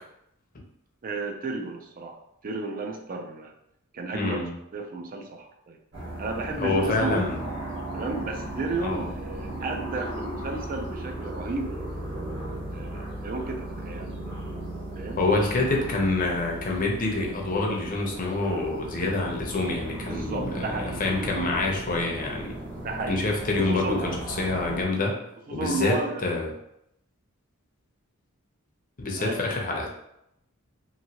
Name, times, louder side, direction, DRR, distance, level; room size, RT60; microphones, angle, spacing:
voice 1, 1.0-2.2 2.4-3.5 3.9-4.4 4.7-5.8 6.2-7.2 7.9-12.2 12.7-14.2 15.0-15.2 20.1-21.0 22.8-23.2 23.6-24.1 25.0-25.2 25.5-26.3 29.2-29.4, right 3 dB, 40° right, 3 dB, 0.4 m, -33 dB
voice 2, 4.1-4.5 6.6-7.4 8.8-9.1 15.2-22.5 23.1-24.1 24.4-25.2 25.5-26.5 29.0-29.9, left 2 dB, 40° left, 0 dB, 0.6 m, -27 dB
sound 1, 5.9-24.8, right 1 dB, 60° right, 1.3 m, -36 dB
2.9 x 2.7 x 2.8 m, 0.79 s
head